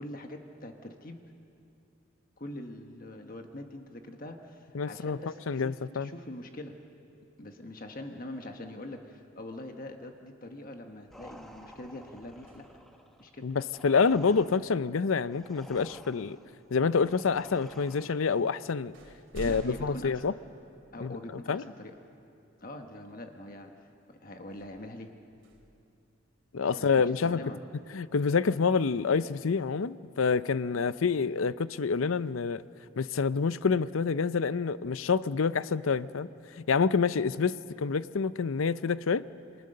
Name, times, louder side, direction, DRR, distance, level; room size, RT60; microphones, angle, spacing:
voice 1, 0.0-1.3 2.4-6.8 7.4-12.7 13.2-13.5 14.3-14.4 19.4-20.2 20.9-22.0 22.6-25.1 26.8-27.6, left 1 dB, 40° left, 5 dB, 1.3 m, -43 dB
voice 2, 4.7-5.2 5.5-6.1 13.4-16.4 16.7-18.9 19.3-20.3 21.0-21.6 26.5-27.4 27.9-32.6 33.0-36.3 36.6-39.2, left 5 dB, 75° left, 16 dB, 0.5 m, -27 dB
sound 1, 11.1-18.5, equal, ahead, 1.3 m, -52 dB
sound 2, 11.4-13.1 15.2-15.4 16.2-17.0 17.8-17.9 18.3-21.2 21.7-21.8 24.4-26.6, right 1 dB, 65° right, 2.7 m, -50 dB
28.0 x 21.5 x 6.6 m, 2.6 s
head